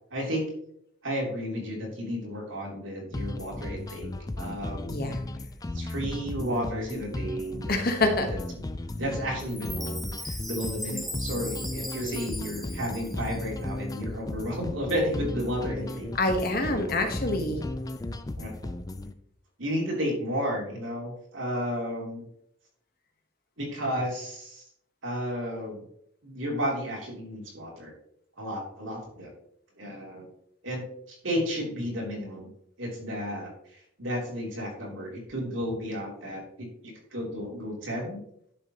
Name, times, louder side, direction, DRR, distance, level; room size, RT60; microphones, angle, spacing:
voice 1, 0.1-0.4 1.0-4.1 4.4-4.8 5.7-7.8 8.6-8.7 8.9-16.1 18.4-18.7 19.6-22.3 23.6-24.6 25.0-25.8 26.2-27.9 28.4-29.3 29.8-30.3 30.6-32.5 32.8-38.2, equal, 80° right, -2 dB, 3.1 m, -32 dB
sound 1, 3.1-19.1, left 1 dB, 20° left, 0.4 m, -35 dB
voice 2, 4.9-5.2 7.7-8.3 16.2-17.6, left 2 dB, 50° left, 5 dB, 1.3 m, -26 dB
Chime, 9.5-13.7, equal, ahead, 0.8 m, -39 dB
11.0 x 6.8 x 3.0 m, 0.71 s
head